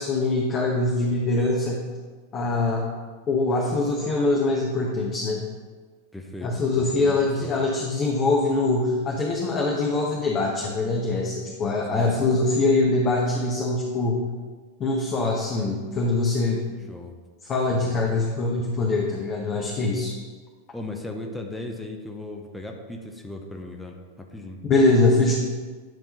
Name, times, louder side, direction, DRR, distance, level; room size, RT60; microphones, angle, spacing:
voice 1, 0.0-1.9 2.3-2.8 3.3-5.4 6.4-14.2 14.8-16.6 17.5-20.1 24.6-25.3, left 2 dB, 30° left, -2 dB, 1.0 m, -23 dB
voice 2, 6.1-7.5 11.8-12.3 16.9-17.2 17.7-18.3 20.7-24.6, left 2 dB, 5° left, 2 dB, 0.8 m, -37 dB
10.5 x 3.6 x 5.5 m, 1.4 s
figure-of-eight pair, 90°, 0 cm